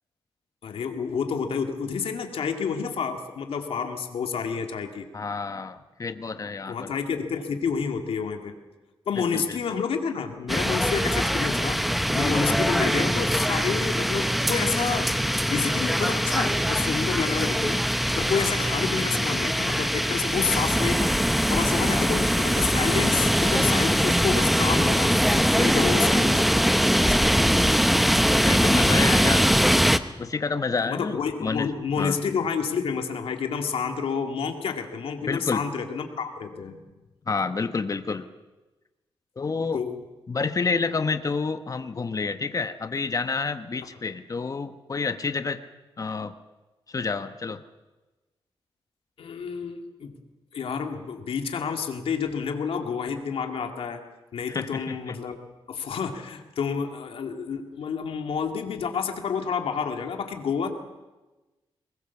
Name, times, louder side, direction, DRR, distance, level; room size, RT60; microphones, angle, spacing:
voice 1, 0.6-5.1 6.7-8.6 9.1-11.8 12.1-21.1 21.5-26.6 27.0-27.3 30.9-36.8 39.7-40.0 49.2-50.2 50.5-54.0 54.3-55.4 55.7-60.7, left 6 dB, 85° left, 5 dB, 2.3 m, -29 dB
voice 2, 5.1-6.9 9.1-9.8 12.4-12.6 18.4-18.5 21.9-22.1 28.4-29.5 30.2-31.7 32.0-32.2 35.2-35.6 37.3-38.3 39.4-39.8 40.3-45.6 46.0-46.3 46.9-47.6 54.5-55.2, left 4 dB, 40° left, 10 dB, 1.2 m, -29 dB
sound 1, 10.5-30.0, equal, ahead, 0.8 m, -22 dB
23.5 x 20.5 x 7.1 m, 1.1 s
wide cardioid pair, 105°, 9 cm